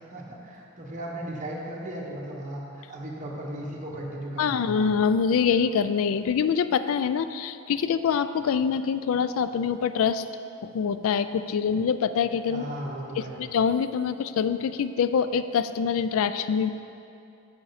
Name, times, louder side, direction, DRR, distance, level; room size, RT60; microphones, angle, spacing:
voice 1, 0.0-4.9 12.5-13.4, right 1 dB, 35° right, -3 dB, 1.2 m, -36 dB
voice 2, 4.4-10.2 10.6-12.7 13.2-16.7, left 6 dB, 65° left, 12 dB, 0.3 m, -25 dB
7.5 x 7.5 x 4.1 m, 2.7 s
head